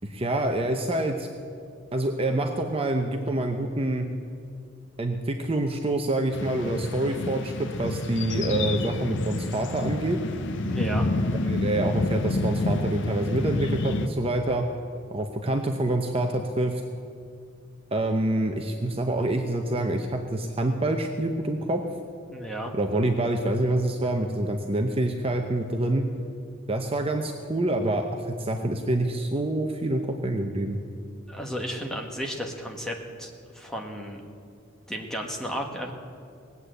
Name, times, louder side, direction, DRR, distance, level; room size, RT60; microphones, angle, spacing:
voice 1, 0.0-1.3 1.9-4.1 5.0-10.2 11.3-14.6 15.1-16.8 17.9-21.8 22.7-26.0 26.7-30.8, right 1 dB, 25° right, 4 dB, 0.7 m, -26 dB
sound 1, 6.3-14.1, left 2 dB, 60° left, 0.7 m, -29 dB
voice 2, 10.7-11.1 22.3-22.7 31.3-34.2 34.9-35.9, equal, 5° left, 1 dB, 1.5 m, -33 dB
19.5 x 8.3 x 7.8 m, 2.4 s
head